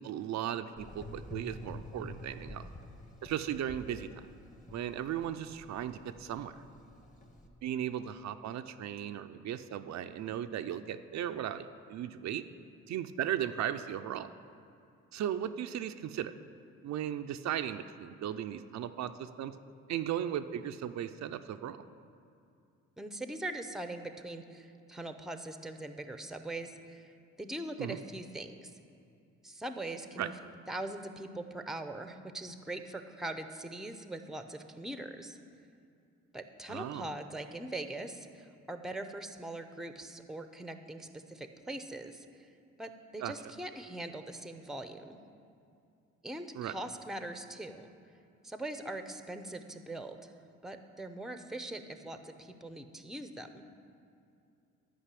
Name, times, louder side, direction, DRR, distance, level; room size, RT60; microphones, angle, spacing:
voice 1, 0.0-2.7 3.2-4.1 4.7-6.5 7.6-12.4 12.9-14.3 15.1-16.3 16.8-19.6 19.9-21.8 27.8-28.0 30.2-30.3 36.7-37.1 43.2-43.3 46.5-46.7, right 10 dB, 65° right, 8 dB, 0.5 m, -36 dB
Gurgling / Engine, 0.8-7.5, left 1 dB, 25° left, 1.5 m, -49 dB
voice 2, 23.0-27.1 27.4-28.7 29.4-30.3 30.7-35.4 36.3-42.3 42.8-45.2 46.2-47.9 48.4-50.3 50.6-53.6, right 1 dB, ahead, 8 dB, 0.7 m, -41 dB
11.5 x 5.4 x 8.3 m, 2.6 s
cardioid pair, 90°, 30 cm